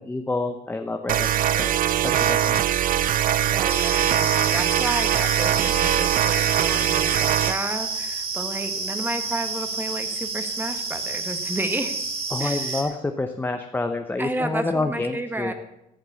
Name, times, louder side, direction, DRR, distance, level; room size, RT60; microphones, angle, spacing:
voice 1, 0.0-1.7 2.0-2.6 12.3-15.5, left 2 dB, 10° left, 5 dB, 0.9 m, -28 dB
sound 1, 1.1-7.6, right 11 dB, 55° right, 0.5 m, -22 dB
voice 2, 3.3-11.9 12.4-12.9 14.2-15.5, right 1 dB, 10° right, 8 dB, 1.6 m, -31 dB
sound 2, 3.7-12.8, right 4 dB, 35° right, 2.8 m, -30 dB
14.0 x 7.9 x 7.1 m, 0.87 s
cardioid pair, 110°, 17 cm